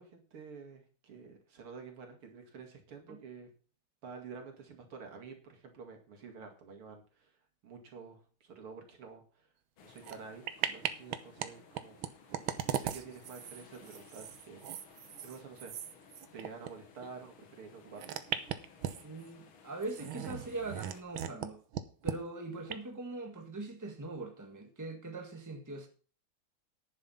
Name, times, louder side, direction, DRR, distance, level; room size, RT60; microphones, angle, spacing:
voice 1, 0.0-3.5 4.0-7.3 7.6-9.5 9.8-15.7 16.3-18.2, right 5 dB, 90° right, 3.1 m, -50 dB
sound 1, 9.8-21.0, left 6 dB, 75° left, 2.2 m, -59 dB
sound 2, 10.0-10.2 10.5-11.5 11.7-16.7 17.0-17.1 18.0-19.3 19.8-21.5 21.7-22.2 22.7-22.8, right 10 dB, 75° right, 1.6 m, -38 dB
voice 2, 19.0-21.6 22.0-25.9, right 2 dB, 10° right, 1.5 m, -41 dB
10.5 x 7.6 x 5.6 m
omnidirectional pair, 2.3 m